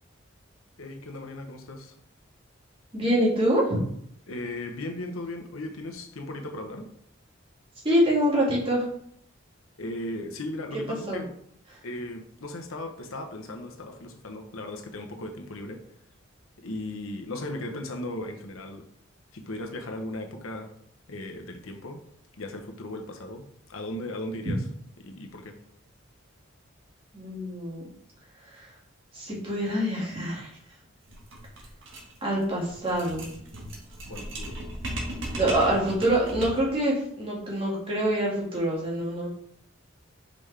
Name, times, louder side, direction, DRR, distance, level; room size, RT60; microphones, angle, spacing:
voice 1, 0.8-1.9 4.3-6.9 9.8-11.3 11.8-15.8 16.6-18.9 19.3-20.7 21.1-22.0 22.4-24.6 25.0-25.6 34.1-34.6, left 1 dB, 85° left, 4 dB, 0.9 m, -37 dB
voice 2, 2.9-3.6 7.8-8.8 11.1-11.2 27.1-27.8 28.5-28.7 29.1-30.5 32.2-33.3 35.4-39.3, right 1 dB, 25° right, -5 dB, 2.1 m, -25 dB
sound 1, 31.0-36.8, right 1 dB, 70° right, 1.5 m, -37 dB
5.6 x 5.2 x 3.4 m, 0.66 s
head